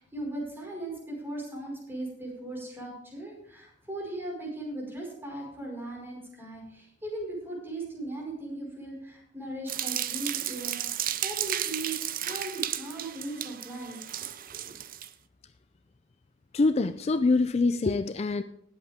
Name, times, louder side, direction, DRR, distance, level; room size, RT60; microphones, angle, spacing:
voice 1, 0.0-14.0 14.5-14.8, right 1 dB, 10° right, -2 dB, 5.1 m, -38 dB
sound 1, 9.7-15.1, right 11 dB, 50° right, 0.6 m, -33 dB
voice 2, 16.5-18.4, left 3 dB, 35° left, 11 dB, 0.4 m, -24 dB
19.0 x 8.0 x 3.6 m, 0.72 s
head